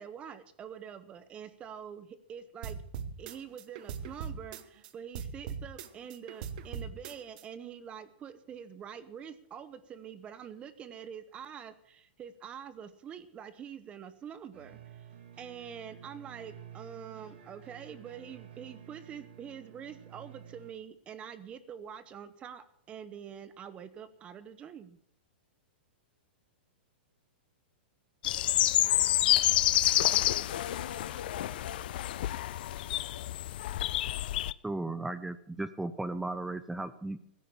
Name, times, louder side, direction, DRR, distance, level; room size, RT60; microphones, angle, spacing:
voice 1, 0.0-2.8 3.2-15.1 15.4-25.0, right 8 dB, 20° right, 14 dB, 0.9 m, -45 dB
sound 1, 2.6-4.9 5.1-7.4, right 6 dB, 50° right, 1.2 m, -40 dB
sound 2, 14.5-20.7, right 9 dB, 80° right, 3.2 m, -51 dB
sound 3, 28.2-34.5, left 14 dB, 60° left, 0.5 m, -28 dB
voice 2, 30.1-32.3, left 8 dB, 90° left, 7 dB, 2.3 m, -44 dB
voice 3, 34.6-37.2, right 2 dB, 5° right, 14 dB, 0.6 m, -35 dB
16.0 x 9.2 x 7.2 m, 0.70 s
hypercardioid pair, 155°, 6 cm